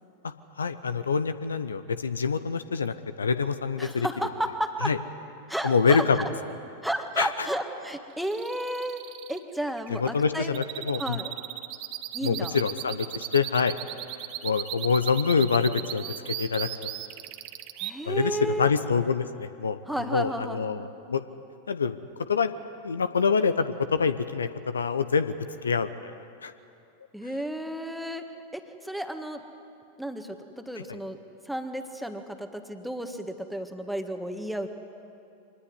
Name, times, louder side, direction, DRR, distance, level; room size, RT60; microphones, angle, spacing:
voice 1, 0.6-4.1 4.8-5.0 5.6-6.2 7.2-7.3 9.9-11.2 12.2-13.7 14.4-16.7 18.1-19.8 20.1-21.2 21.7-22.0 22.3-22.5 22.8-25.3 25.6-25.9 26.4-26.5 30.9-31.0, left 5 dB, 70° left, 12 dB, 0.9 m, -26 dB
voice 2, 3.8-4.9 5.5-6.3 6.8-9.0 9.3-11.3 12.1-12.6 17.8-18.8 19.9-20.9 27.1-28.2 28.5-29.4 30.0-31.2 31.5-34.7, right 1 dB, ahead, 6 dB, 1.7 m, -32 dB
sound 1, 8.2-17.9, right 14 dB, 40° right, 1.2 m, -37 dB
24.5 x 19.5 x 9.8 m, 2.7 s
figure-of-eight pair, 90°, 0 cm